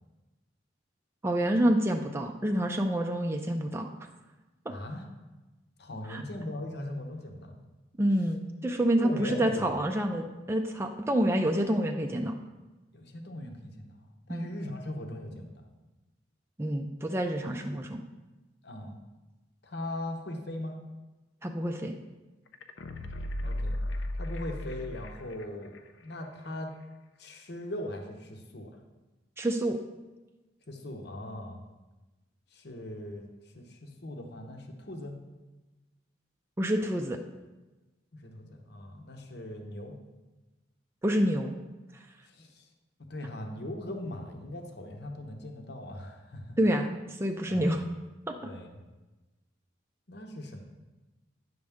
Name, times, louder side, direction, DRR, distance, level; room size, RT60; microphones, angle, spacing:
voice 1, 1.2-3.9 6.1-6.2 8.0-12.4 14.3-14.5 16.6-18.0 21.4-21.9 29.4-29.8 36.6-37.2 41.0-41.5 46.6-47.8 48.4-48.5, right 1 dB, 15° right, 3 dB, 0.4 m, -28 dB
voice 2, 4.7-5.1 5.8-7.6 9.0-9.8 12.9-14.0 14.3-15.5 17.4-17.8 18.6-19.0 19.6-20.8 23.4-23.8 24.2-25.8 26.0-26.7 27.2-28.7 30.7-31.6 32.5-33.3 33.5-35.1 38.1-39.9 42.3-42.7 43.1-46.6 47.5-47.8 48.4-48.8 50.1-50.6, left 1 dB, 60° left, 3 dB, 1.0 m, -39 dB
sound 1, 22.5-25.4 25.7-25.8, left 1 dB, 75° left, 0.6 m, -35 dB
9.5 x 6.3 x 3.5 m, 1.1 s
head